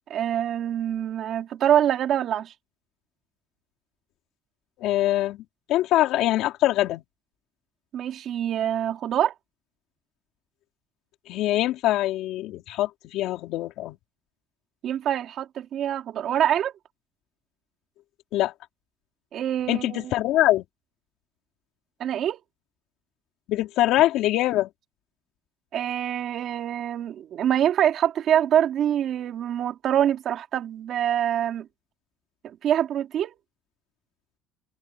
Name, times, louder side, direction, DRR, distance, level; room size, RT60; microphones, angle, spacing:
voice 1, 0.1-2.5 7.9-9.3 14.8-16.7 19.3-20.1 22.0-22.4 25.7-31.7 32.4-33.3, right 10 dB, 50° right, 2.7 m, -25 dB
voice 2, 4.8-5.4 5.7-7.0 11.3-14.0 18.3-18.5 19.7-20.6 23.5-24.7, left 15 dB, 70° left, 4.0 m, -23 dB
cardioid pair, 150°, 0 cm